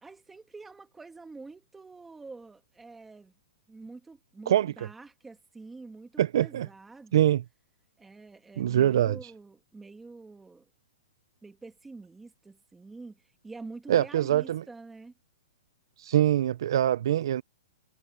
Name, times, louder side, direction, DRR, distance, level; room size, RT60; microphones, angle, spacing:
voice 1, 0.0-3.3 3.7-7.3 8.0-10.7 11.4-15.1, right 3 dB, 5° right, 1.5 m, -47 dB
voice 2, 6.2-6.7 7.1-7.4 8.6-9.2 13.9-14.6 16.0-17.4, right 11 dB, 50° right, 0.4 m, -24 dB
hypercardioid pair, 175°, 3 cm